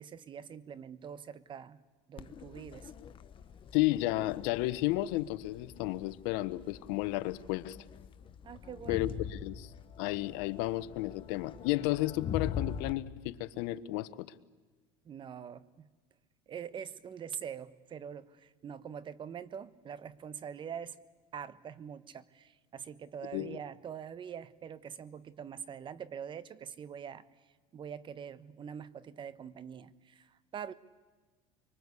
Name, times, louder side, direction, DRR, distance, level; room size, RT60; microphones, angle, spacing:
voice 1, 0.0-1.8 2.1-2.9 8.4-9.1 15.0-15.9 16.5-21.0 21.3-27.2 27.7-30.7, right 8 dB, 35° right, 16 dB, 1.2 m, -44 dB
Crowd, 2.2-12.9, left 8 dB, 35° left, 1.1 m, -43 dB
voice 2, 3.7-7.8 8.9-9.7 10.0-14.3 23.3-23.6, left 17 dB, 75° left, 14 dB, 1.1 m, -32 dB
25.0 x 24.0 x 8.3 m, 1.3 s
supercardioid pair, 110°, 14 cm